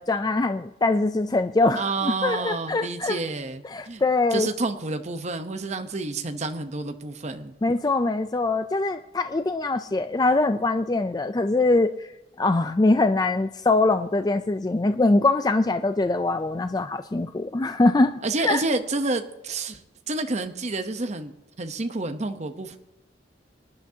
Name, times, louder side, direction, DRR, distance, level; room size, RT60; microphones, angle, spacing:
voice 1, 0.0-3.2 3.6-4.5 7.6-11.9 12.4-18.6, left 2 dB, 20° left, 9 dB, 0.4 m, -23 dB
voice 2, 1.8-4.0 4.3-7.5 18.2-21.3 21.6-22.8, right 3 dB, 40° right, 7 dB, 0.9 m, -29 dB
24.5 x 10.5 x 2.8 m, 0.94 s
head